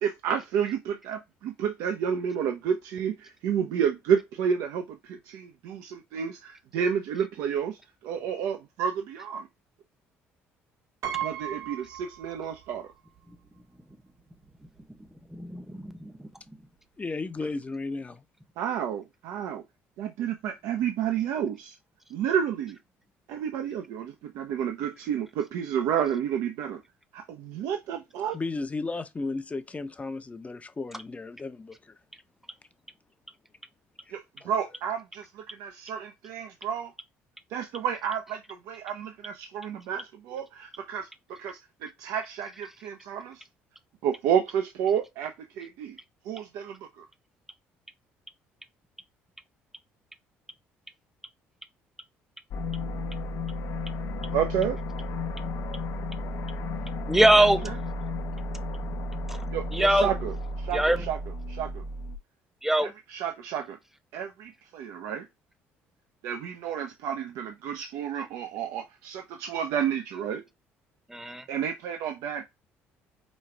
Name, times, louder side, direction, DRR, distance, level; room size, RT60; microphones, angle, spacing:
voice 1, 0.0-9.5 11.2-12.9 18.6-19.6 20.0-21.8 22.1-22.8 23.3-26.8 27.1-28.4 34.1-36.9 37.5-43.4 44.0-46.0 46.2-47.1 54.3-54.8 57.3-57.7 59.5-61.2 61.5-61.8 62.8-63.8 64.1-65.3 66.2-70.4 71.5-72.4, right 8 dB, 75° right, 0.6 m, -30 dB
Piano, 11.0-12.8 13.2-13.3 14.4-14.5 14.8-15.1, right 10 dB, 60° right, 1.0 m, -36 dB
voice 2, 15.3-16.3 57.1-57.6 59.3-59.4 59.7-60.1 60.7-61.1 62.6-62.9 71.1-71.4, right 1 dB, 5° right, 0.8 m, -23 dB
voice 3, 17.0-18.2 28.3-31.9 34.1-34.2 34.4-34.5, left 3 dB, 25° left, 0.7 m, -34 dB
sound 1, 52.5-62.2, left 2 dB, 65° left, 0.8 m, -33 dB
5.2 x 2.4 x 3.2 m
supercardioid pair, 70°, 6 cm